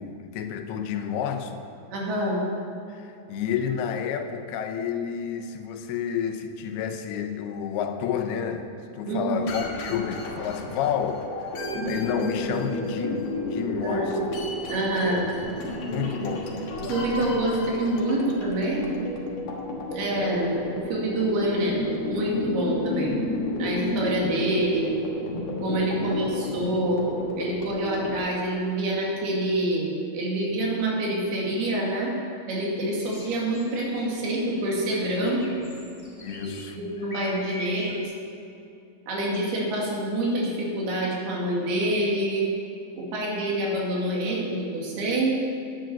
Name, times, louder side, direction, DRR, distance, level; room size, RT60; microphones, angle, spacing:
voice 1, 0.0-1.6 2.9-11.5 11.9-14.3 15.0-15.3 15.9-16.7 25.9-26.6 36.2-36.8, left 8 dB, 85° left, 7 dB, 2.8 m, -30 dB
voice 2, 1.9-2.4 9.0-9.4 13.8-14.2 14.7-15.3 16.9-18.9 19.9-23.2 23.6-24.9 25.6-27.0 27.4-29.9 30.1-32.1 32.5-35.6 36.7-38.1 39.1-42.5 43.0-45.4, right 1 dB, 75° right, -3 dB, 4.3 m, -26 dB
sound 1, 9.4-28.3, left 1 dB, 55° left, 1.9 m, -31 dB
sound 2, 33.0-38.0, left 1 dB, 25° left, 0.6 m, -44 dB
10.5 x 10.0 x 7.5 m, 2.6 s
omnidirectional pair, 4.5 m